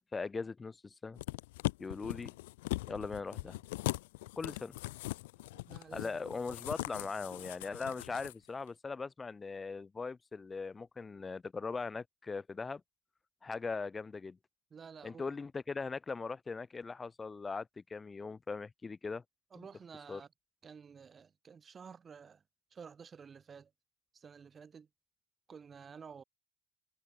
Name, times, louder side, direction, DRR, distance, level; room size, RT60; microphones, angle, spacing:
voice 1, 0.1-1.2 1.8-2.3 2.9-3.6 4.4-4.8 5.9-12.8 13.4-14.4 15.0-19.2 19.6-19.7 20.1-20.2, left 4 dB, 25° left, 1.0 m, -40 dB
sound 1, 1.2-8.3 8.7-8.8, left 20 dB, 85° left, 0.4 m, -40 dB
voice 2, 5.5-6.1 14.7-15.2 19.5-20.3 20.6-22.4 22.7-23.7 24.1-24.9 25.5-26.2, right 6 dB, 35° right, 6.5 m, -52 dB
supercardioid pair, 85°, 0 cm